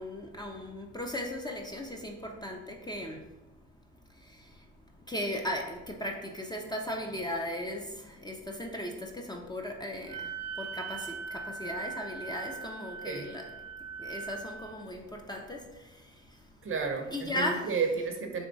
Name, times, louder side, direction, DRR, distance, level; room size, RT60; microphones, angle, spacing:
voice 1, 0.0-3.6 4.0-13.5 13.9-16.6 17.1-17.8, left 1 dB, 15° left, 1 dB, 0.5 m, -37 dB
Wind instrument woodwind instrument, 10.1-14.8, right 5 dB, 85° right, 0.5 m, -40 dB
voice 2, 16.6-18.5, right 5 dB, 45° right, 4 dB, 0.7 m, -32 dB
3.5 x 2.9 x 3.9 m, 1.0 s
cardioid pair, 90°, 30 cm